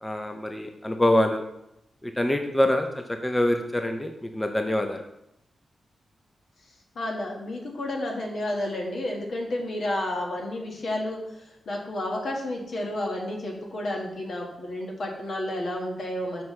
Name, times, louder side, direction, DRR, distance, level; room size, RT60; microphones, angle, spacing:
voice 1, 0.0-1.4 2.0-5.0, left 1 dB, 10° left, 5 dB, 0.5 m, -25 dB
voice 2, 6.9-11.4 11.6-16.4, left 1 dB, 70° left, -1 dB, 1.6 m, -31 dB
7.3 x 5.9 x 3.2 m, 0.83 s
wide cardioid pair, 105°, 0 cm